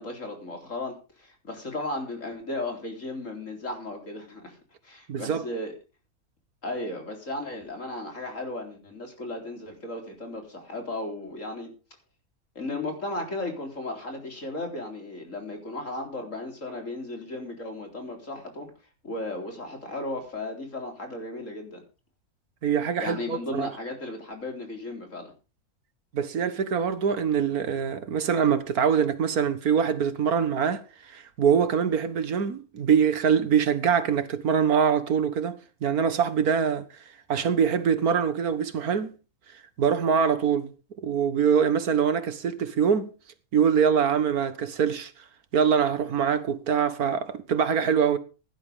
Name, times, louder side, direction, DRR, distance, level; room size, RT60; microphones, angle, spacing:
voice 1, 0.0-4.6 4.8-5.7 6.6-11.7 12.6-18.7 19.0-21.8 23.0-25.3, left 2 dB, 55° left, 4.3 m, -35 dB
voice 2, 5.1-5.5 22.6-23.7 26.1-36.9 37.3-39.1 39.8-40.7 41.0-43.1 43.5-45.1 45.5-48.2, right 7 dB, 80° right, 1.9 m, -24 dB
16.5 x 11.5 x 3.6 m
omnidirectional pair, 1.6 m